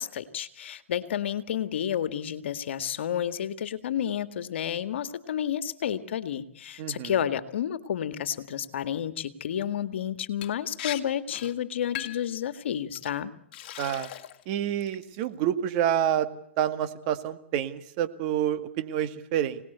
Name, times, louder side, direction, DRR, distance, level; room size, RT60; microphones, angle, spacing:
voice 1, 0.0-13.3, left 9 dB, 60° left, 12 dB, 1.8 m, -31 dB
voice 2, 6.8-7.1 13.8-14.1 14.5-16.3 16.6-19.6, right 10 dB, 40° right, 10 dB, 1.9 m, -28 dB
Liquid, 10.4-10.5 10.8-11.0 11.3-11.5 11.9-12.3 12.9-13.1 13.5-14.4 14.8-15.2, left 13 dB, 45° left, 2.1 m, -38 dB
26.0 x 19.0 x 8.1 m, 0.73 s
hypercardioid pair, 135°, 7 cm